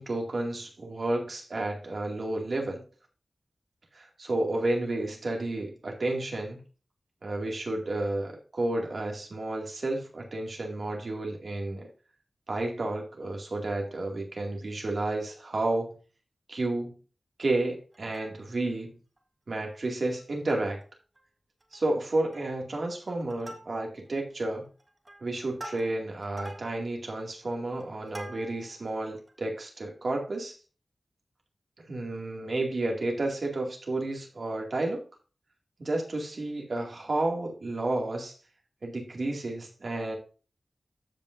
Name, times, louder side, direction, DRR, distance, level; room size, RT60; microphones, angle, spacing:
voice 1, 0.0-2.8 3.9-6.6 7.2-11.9 12.5-16.0 16.5-16.9 17.4-19.0 19.5-20.8 21.7-24.7 25.2-30.6 31.9-35.0 35.8-38.3 38.8-40.2, right 2 dB, 65° right, 1 dB, 2.3 m, -31 dB
Plucked string instrument, 17.9-18.7 19.2-19.3 19.5-19.7 20.2-20.8 21.2-21.3 21.6-22.0 22.3-22.7 23.1-24.1 24.7-28.8 29.3-29.4, right 1 dB, 30° right, 1.4 m, -46 dB
14.0 x 5.2 x 2.6 m, 0.35 s
wide cardioid pair, 75°, 0 cm